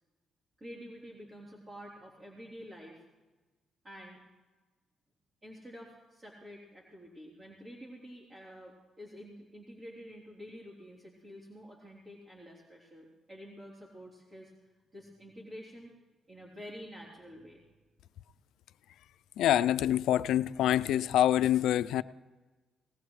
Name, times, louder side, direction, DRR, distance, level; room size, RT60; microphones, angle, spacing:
voice 1, 0.6-3.0 3.8-4.2 5.4-15.9 16.3-17.7, equal, 35° right, 3.5 m, -49 dB
voice 2, 19.4-22.0, left 12 dB, 80° left, 0.4 m, -26 dB
19.5 x 19.0 x 3.2 m
cardioid pair, 90°, 0 cm